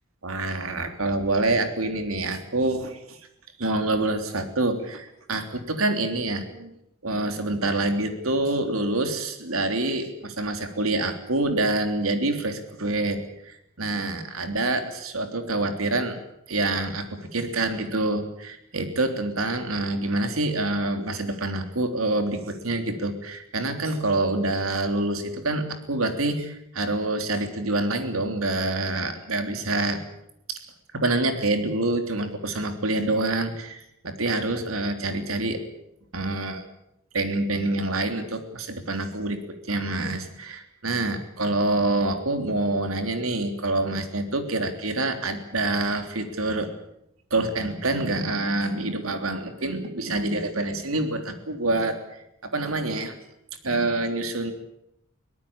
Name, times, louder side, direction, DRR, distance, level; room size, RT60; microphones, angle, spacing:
voice 1, 0.2-3.2 3.6-6.7 7.0-16.2 16.5-30.0 30.5-30.6 30.9-35.6 36.1-36.6 37.1-39.4 39.7-46.7 47.3-52.2 52.5-53.1 53.6-54.5, right 2 dB, 90° right, 7 dB, 3.4 m, -26 dB
23.0 x 18.0 x 8.8 m, 0.79 s
head